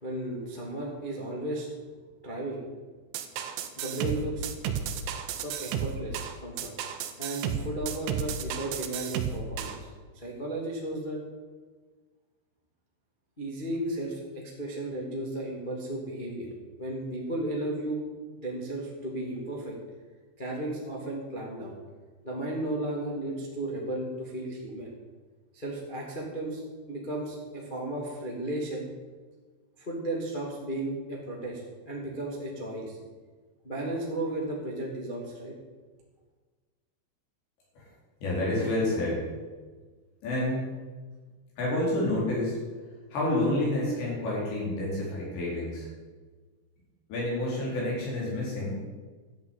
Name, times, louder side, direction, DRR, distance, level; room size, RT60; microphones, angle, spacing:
voice 1, 0.0-1.7 2.2-2.7 3.7-4.5 5.3-6.7 7.2-11.2 13.4-16.5 16.8-18.1 18.4-19.8 20.4-21.7 22.2-24.9 25.5-26.6 26.9-28.8 29.8-33.0 33.6-35.6, right 1 dB, 35° left, -3 dB, 0.7 m, -34 dB
sound 1, 3.1-9.8, right 8 dB, 75° right, 3.4 m, -33 dB
voice 2, 38.2-39.3 40.2-40.7 41.6-42.6 43.1-45.9 47.1-48.7, left 1 dB, 55° left, -4 dB, 6.5 m, -29 dB
12.5 x 8.5 x 9.0 m, 1.4 s
omnidirectional pair, 6.0 m